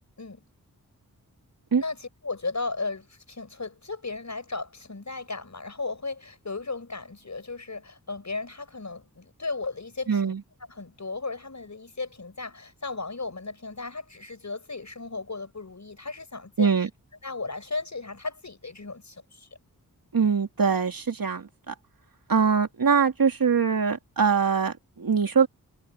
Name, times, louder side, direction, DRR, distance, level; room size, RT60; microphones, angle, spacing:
voice 1, 1.8-10.3 10.7-16.9 17.2-19.5, left 3 dB, 50° left, 5.6 m, -35 dB
voice 2, 10.1-10.4 16.6-16.9 20.1-21.7 22.3-25.5, right 6 dB, 70° right, 3.1 m, -23 dB
cardioid pair, 50°, 35 cm